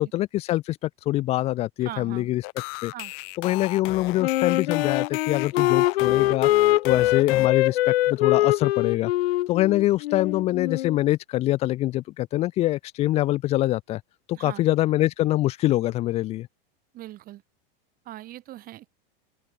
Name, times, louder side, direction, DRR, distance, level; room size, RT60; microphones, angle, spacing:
voice 1, 0.0-2.4 2.8-2.9 3.4-9.1 9.5-14.0 14.3-16.5, left 15 dB, 20° left, 0.5 m, -24 dB
voice 2, 1.8-2.3 2.9-3.1 14.3-14.7 16.9-17.4 18.0-18.9, right 14 dB, 30° right, 2.7 m, -40 dB
sound 1, 2.4-7.5, left 32 dB, 45° left, 4.2 m, -36 dB
Wind instrument woodwind instrument, 4.2-11.0, left 16 dB, 90° left, 1.0 m, -23 dB
open air
supercardioid pair, 160°, 29 cm